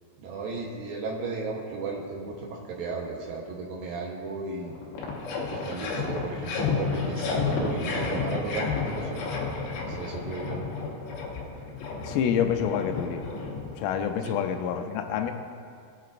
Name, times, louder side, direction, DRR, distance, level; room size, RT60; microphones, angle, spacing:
voice 1, 0.2-4.8 5.5-9.3 9.8-10.7 14.3-14.4, right 3 dB, 90° right, -2 dB, 2.0 m, -35 dB
sound 1, 4.3-4.4 4.6-14.0, left 4 dB, 65° left, 3.4 m, -31 dB
voice 2, 12.1-13.3 13.8-15.3, left 8 dB, 90° left, 6 dB, 3.4 m, -27 dB
21.0 x 8.8 x 2.6 m, 2.3 s
omnidirectional pair, 5.7 m